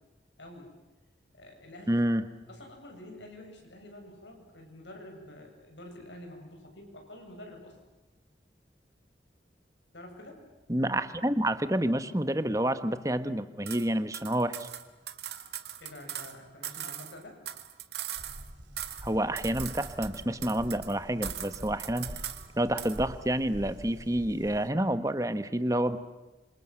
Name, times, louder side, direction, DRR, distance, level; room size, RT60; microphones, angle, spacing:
voice 1, 0.4-0.7 1.3-2.0 2.5-7.8 9.9-10.4 15.8-17.4, left 1 dB, 90° left, 2 dB, 7.9 m, -48 dB
voice 2, 1.9-2.2 10.7-14.7 19.0-22.1 22.6-26.0, right 1 dB, 20° right, 11 dB, 1.3 m, -28 dB
sound 1, 13.7-13.9 14.1-16.3 16.6-18.5 18.8-19.1 19.4-20.9 21.2-22.5 22.8-23.0, right 11 dB, 70° right, 2.1 m, -40 dB
sound 2, 18.2-24.7, equal, 85° right, 3.1 m, -45 dB
27.5 x 27.0 x 7.9 m, 1.1 s
head